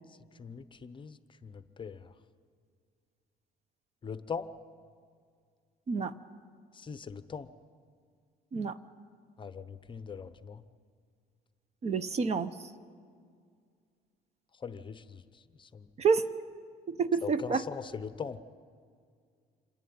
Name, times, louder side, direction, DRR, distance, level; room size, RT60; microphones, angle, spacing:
voice 1, 0.1-2.1 4.0-4.5 6.7-7.5 9.4-10.6 14.5-15.9 17.2-18.4, left 6 dB, 30° left, 12 dB, 0.8 m, -41 dB
voice 2, 11.8-12.5 16.0-16.3 16.9-17.6, right 5 dB, 40° right, 14 dB, 0.8 m, -28 dB
27.0 x 11.0 x 9.5 m, 2.1 s
cardioid pair, 110°, 17 cm